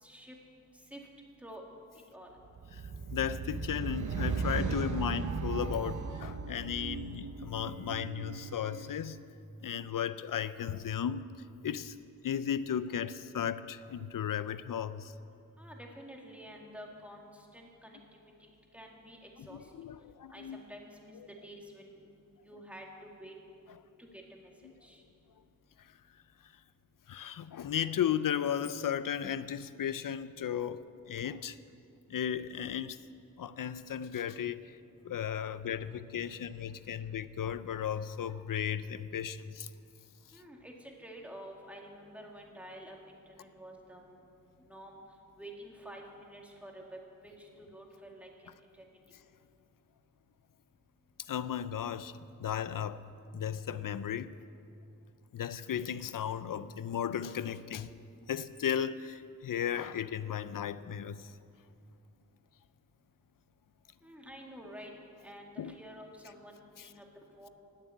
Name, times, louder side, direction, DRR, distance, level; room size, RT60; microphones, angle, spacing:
voice 1, 0.0-0.4 0.9-1.0 1.4-1.6 2.1-2.3 15.6-18.0 18.4-18.5 18.7-19.6 20.3-21.1 21.4-22.1 22.5-23.3 24.0-24.5 24.8-25.0 40.3-44.1 44.7-44.9 45.4-48.3 48.8-48.9 64.0-64.9 65.2-67.0 67.4-67.5, equal, 5° right, 0 dB, 2.1 m, -49 dB
sound 1, 2.5-9.0, right 5 dB, 60° right, 0.9 m, -37 dB
voice 2, 3.1-9.2 9.6-11.2 11.6-12.0 12.2-15.1 19.4-20.6 25.8-25.9 27.1-31.6 32.1-33.0 33.4-34.8 35.0-39.7 40.3-40.4 51.2-53.0 53.3-54.3 55.3-57.9 58.3-61.3 65.6-65.7 66.8-66.9, left 9 dB, 75° left, 14 dB, 0.5 m, -35 dB
19.5 x 7.3 x 8.3 m, 2.6 s
wide cardioid pair, 120°, 33 cm